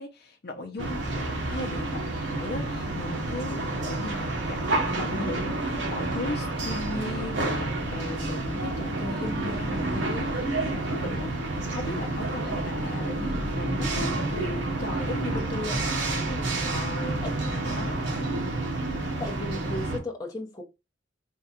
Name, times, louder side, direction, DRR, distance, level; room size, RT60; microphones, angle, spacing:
voice 1, 0.0-3.6 3.9-17.4 17.7-18.0, left 2 dB, 55° left, 0.7 m, -37 dB
sound 1, 0.8-20.0, right 2 dB, 65° right, 1.1 m, -29 dB
sound 2, 2.3-8.4, right 2 dB, 50° right, 1.3 m, -46 dB
voice 2, 19.2-20.6, left 1 dB, 20° left, 0.8 m, -35 dB
3.7 x 2.4 x 4.2 m
head